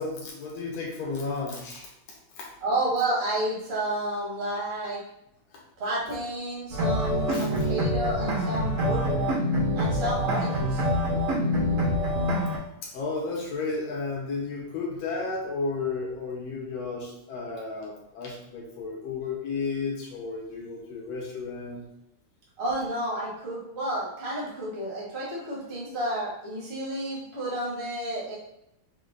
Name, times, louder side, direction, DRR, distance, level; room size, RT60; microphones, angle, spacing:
voice 1, 0.0-2.5 7.3-7.6 12.5-21.8, left 4 dB, 75° left, -2 dB, 1.6 m, -33 dB
voice 2, 2.6-5.0 5.8-9.3 9.7-10.8 22.6-28.3, right 1 dB, 40° right, -5 dB, 0.9 m, -31 dB
sound 1, 6.7-12.6, equal, 90° right, 2.8 m, -26 dB
5.7 x 2.2 x 3.8 m, 0.80 s
omnidirectional pair, 3.5 m